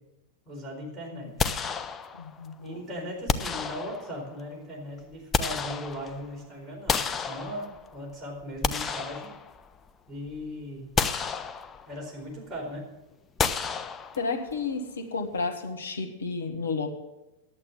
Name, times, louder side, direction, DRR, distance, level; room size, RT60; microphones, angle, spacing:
voice 1, 0.5-1.3 2.6-9.3 10.1-10.9 11.9-12.9, equal, 10° right, -4 dB, 4.4 m, -38 dB
sound 1, 1.4-2.4 3.3-4.3 5.0-6.3 6.9-8.0 8.4-9.9 10.3-10.4 11.0-12.0 13.4-14.5, left 6 dB, 20° left, 0.6 m, -30 dB
voice 2, 2.2-2.8 14.2-17.0, left 4 dB, 70° left, 2 dB, 1.6 m, -32 dB
11.0 x 7.8 x 7.4 m, 0.97 s
figure-of-eight pair, 95°, 0 cm